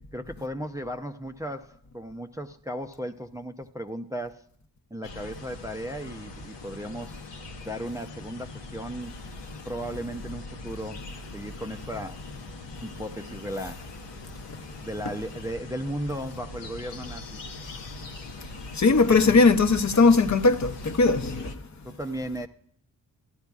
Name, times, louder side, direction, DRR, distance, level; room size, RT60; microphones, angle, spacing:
voice 1, 0.1-4.4 4.9-7.3 7.6-9.1 9.6-11.0 11.3-12.2 12.8-14.1 14.8-17.4 21.8-22.5, equal, 10° right, 0.5 m, -35 dB
sound 1, 5.0-21.5, left 2 dB, 75° left, 0.8 m, -41 dB
voice 2, 18.8-21.4, left 4 dB, 40° left, 0.7 m, -19 dB
14.5 x 11.5 x 2.3 m
cardioid pair, 55°, 43 cm